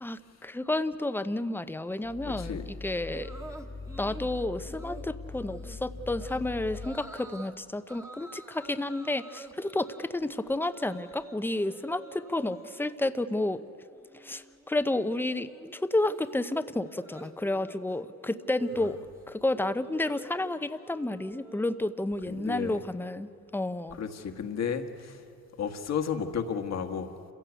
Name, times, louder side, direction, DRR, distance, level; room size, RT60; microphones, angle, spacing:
voice 1, 0.0-3.3 4.0-13.6 14.2-19.0 19.3-24.0, left 2 dB, 5° left, 12 dB, 0.8 m, -31 dB
Growling, 2.0-7.0, left 4 dB, 40° left, 1.7 m, -41 dB
voice 2, 2.3-2.7 18.8-18.9 22.3-22.7 23.9-25.2 25.6-27.1, left 7 dB, 60° left, 7 dB, 1.7 m, -33 dB
sound 1, 3.1-4.3 4.7-5.1 5.5-5.8 6.1-6.4 6.7-7.5 7.9-11.4 11.6-12.9 13.3-13.7 13.9-22.1, right 1 dB, 10° right, 1.6 m, -48 dB
28.0 x 16.0 x 8.2 m, 2.5 s
cardioid pair, 90°, 30 cm